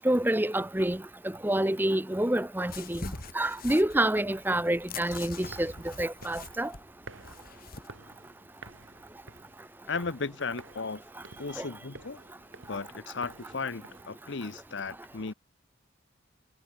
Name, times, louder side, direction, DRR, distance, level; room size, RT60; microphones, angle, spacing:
voice 1, 0.0-1.0 1.4-3.0 3.3-5.7 6.0-6.7 11.6-11.7, right 1 dB, 10° right, 0.9 m, -27 dB
sound 1, 2.7-7.9, left 4 dB, 45° left, 2.2 m, -43 dB
sound 2, 5.3-14.1, right 3 dB, 70° right, 4.0 m, -52 dB
voice 2, 9.9-11.0 11.4-12.2 12.7-15.3, left 4 dB, 60° left, 0.8 m, -35 dB
head